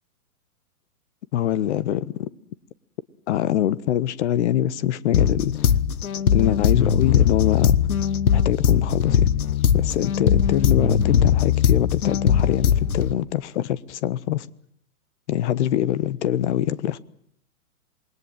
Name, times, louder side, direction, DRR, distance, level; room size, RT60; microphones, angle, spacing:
voice 1, 1.3-2.3 3.3-5.5 6.3-7.8 8.3-9.3 9.7-14.5 15.3-17.0, left 12 dB, 50° left, 1.3 m, -24 dB
sound 1, 5.1-13.1, left 8 dB, 70° left, 1.3 m, -20 dB
27.5 x 21.0 x 7.5 m
hypercardioid pair, 120°, 44 cm